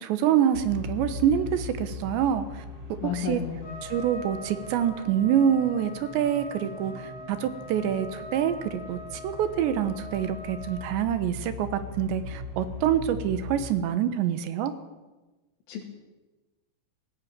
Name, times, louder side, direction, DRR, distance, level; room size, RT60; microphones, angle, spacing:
voice 1, 0.0-2.4 3.0-3.4 3.8-6.9 7.3-9.0 9.2-14.7, right 9 dB, 75° right, 11 dB, 3.2 m, -26 dB
sound 1, 0.5-13.6, left 2 dB, 25° right, 3.7 m, -40 dB
voice 2, 3.0-3.8 15.7-15.8, left 9 dB, 80° left, -3 dB, 4.9 m, -32 dB
Trumpet, 3.6-10.9, left 1 dB, 25° left, 3.0 m, -43 dB
19.5 x 15.5 x 9.0 m, 1.2 s
omnidirectional pair, 5.6 m